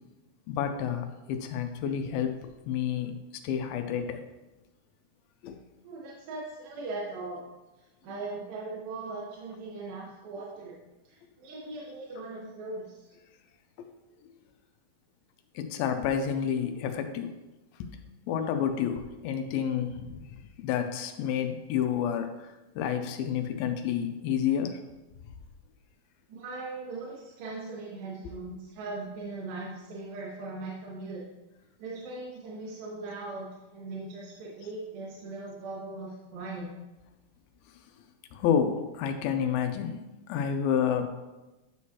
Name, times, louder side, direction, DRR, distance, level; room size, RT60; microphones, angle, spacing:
voice 1, 0.5-3.2 3.4-4.2 5.4-5.6 13.8-13.9 15.6-17.3 17.8-17.9 18.3-20.2 20.6-24.8 38.3-40.0 40.3-41.1, left 8 dB, 85° left, 6 dB, 2.5 m, -29 dB
voice 2, 5.8-7.4 8.0-10.8 11.0-13.1 26.3-31.2 31.8-36.7, right 3 dB, 80° right, -5 dB, 2.9 m, -39 dB
10.5 x 6.2 x 2.9 m, 1.0 s
omnidirectional pair, 4.2 m